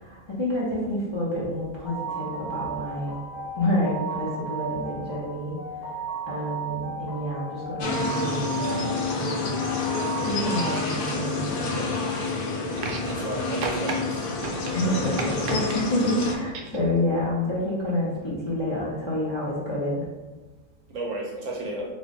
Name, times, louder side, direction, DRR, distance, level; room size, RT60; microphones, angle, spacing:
voice 1, 0.0-3.1 3.5-5.6 6.3-8.9 9.2-9.3 10.3-11.9 14.7-20.0, left 1 dB, 25° left, -7 dB, 0.7 m, -28 dB
sound 1, 1.8-10.8, right 4 dB, 60° left, 1.4 m, -35 dB
sound 2, 7.8-16.3, left 3 dB, 85° left, 0.5 m, -28 dB
sound 3, 12.8-13.3 13.6-14.0 14.4-15.8 16.2-16.8 17.9-18.0, right 4 dB, 85° right, 1.2 m, -34 dB
voice 2, 13.1-14.3 20.9-21.9, right 2 dB, 65° right, -2 dB, 1.0 m, -32 dB
3.5 x 2.5 x 3.8 m, 1.2 s
omnidirectional pair, 1.7 m